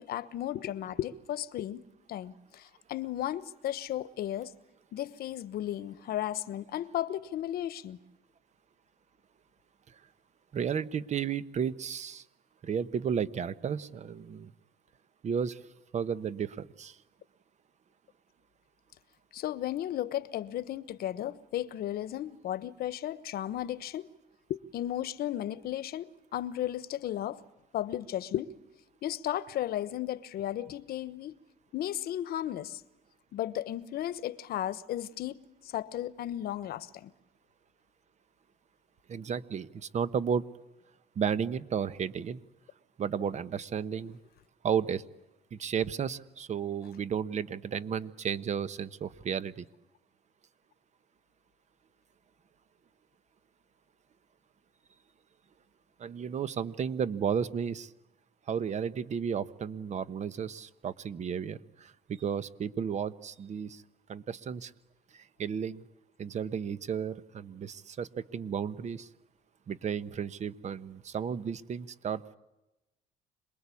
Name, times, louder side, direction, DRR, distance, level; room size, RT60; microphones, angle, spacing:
voice 1, 0.0-1.8 2.1-4.5 4.9-8.0 19.3-24.1 24.5-27.4 27.7-28.5 29.0-31.3 31.7-32.8 33.3-35.4 35.6-37.1, left 12 dB, 65° left, 1.2 m, -34 dB
voice 2, 10.5-12.2 12.6-14.5 15.2-15.6 15.9-17.0 39.1-40.4 41.1-42.4 43.0-44.2 44.6-45.0 45.5-49.7 56.0-57.9 58.5-63.8 64.1-64.7 65.1-65.8 66.2-69.1 69.7-72.4, right 7 dB, 45° right, 1.1 m, -33 dB
27.0 x 21.0 x 8.5 m
cardioid pair, 110°, 17 cm